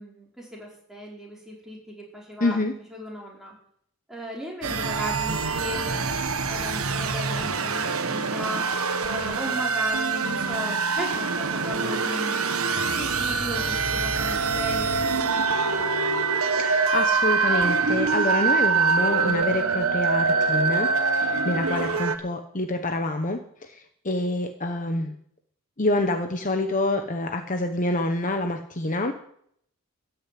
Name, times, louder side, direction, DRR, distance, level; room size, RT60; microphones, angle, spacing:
voice 1, 0.0-2.6 2.9-3.6 4.1-6.2 6.5-8.7 9.0-12.6 13.0-15.9, equal, ahead, -3 dB, 4.6 m, -36 dB
voice 2, 2.4-2.7 16.6-25.1 25.8-29.1, left 2 dB, 35° left, 5 dB, 1.1 m, -27 dB
sound 1, 4.6-22.2, right 4 dB, 85° right, 1.3 m, -24 dB
14.0 x 6.8 x 9.3 m, 0.67 s
head